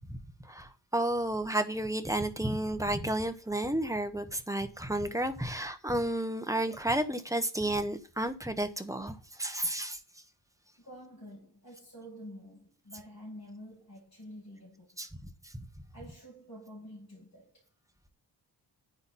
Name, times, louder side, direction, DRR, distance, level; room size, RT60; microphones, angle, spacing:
voice 1, 0.4-10.0 15.0-15.1 15.4-15.5, right 1 dB, 10° right, 1.0 m, -32 dB
voice 2, 10.8-15.1 15.9-17.7, equal, 40° left, 7.2 m, -49 dB
10.0 x 8.6 x 4.2 m
wide cardioid pair, 170°, 43 cm